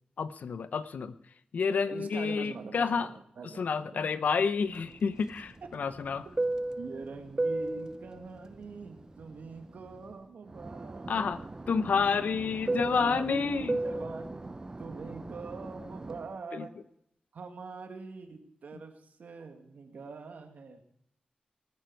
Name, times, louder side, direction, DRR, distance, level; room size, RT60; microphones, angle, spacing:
voice 1, 0.2-1.1 1.5-3.1 3.6-6.3 11.1-11.4 11.7-13.8 16.6-16.7, left 5 dB, 80° left, 13 dB, 0.7 m, -29 dB
voice 2, 1.9-4.2 4.4-4.5 5.6-5.9 6.3-6.4 6.8-11.3 12.7-16.8 17.3-20.8, right 4 dB, 85° right, 6 dB, 1.8 m, -44 dB
Fixed-wing aircraft airplane, 4.8-10.1 10.5-16.3, right 2 dB, 25° right, 0.6 m, -36 dB
19.5 x 9.1 x 4.6 m, 0.73 s
wide cardioid pair, 120°, 3 cm